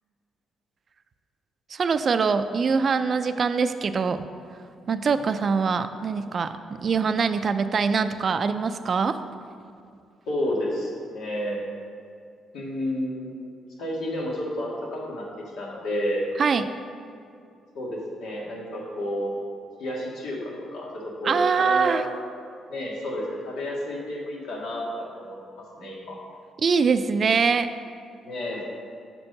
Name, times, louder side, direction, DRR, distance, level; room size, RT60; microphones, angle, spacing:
voice 1, 1.7-4.3 4.9-9.2 16.4-16.7 21.2-22.0 26.6-27.7, right 5 dB, 45° right, 10 dB, 0.4 m, -23 dB
voice 2, 10.3-11.6 12.5-13.5 13.8-15.3 15.6-16.3 17.8-19.4 19.8-22.1 22.7-25.4 25.8-26.2 28.2-28.6, equal, 80° left, -3 dB, 1.7 m, -31 dB
6.1 x 4.5 x 6.4 m, 2.4 s
cardioid pair, 90°, 0 cm